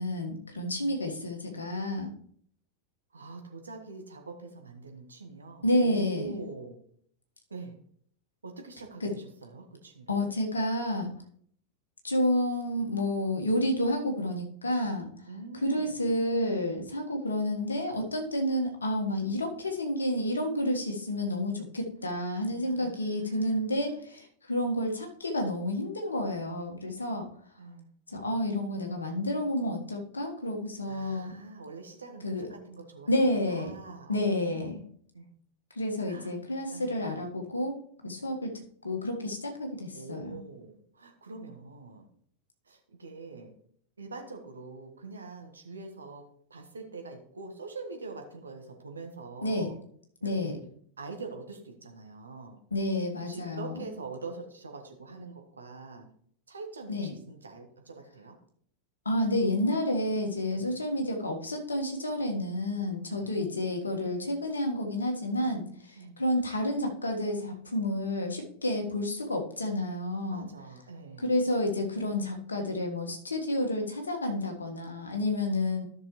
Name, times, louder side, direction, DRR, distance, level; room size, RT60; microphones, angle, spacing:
voice 1, 0.0-2.1 5.6-6.4 9.0-9.1 10.1-11.1 12.0-15.1 15.6-27.3 28.1-31.3 32.2-32.4 33.1-33.7 34.1-34.8 35.7-37.8 38.0-40.4 49.4-49.7 50.2-50.6 52.7-53.9 56.9-57.1 59.0-70.5 71.2-75.8, left 1 dB, 75° left, 3 dB, 1.5 m, -30 dB
voice 2, 3.1-6.8 7.5-7.8 8.4-10.3 15.2-15.9 22.1-22.3 22.6-24.0 27.6-27.9 30.8-33.2 33.5-34.7 35.1-35.4 36.1-36.3 36.7-36.9 39.9-42.1 42.6-43.5 44.0-49.8 50.2-50.6 51.0-52.6 53.2-56.1 56.5-58.4 60.5-60.7 63.1-63.3 65.9-66.2 70.3-71.3, right 3 dB, 75° right, 4 dB, 1.4 m, -44 dB
13.0 x 6.1 x 3.1 m, 0.62 s
figure-of-eight pair, 90°, 0 cm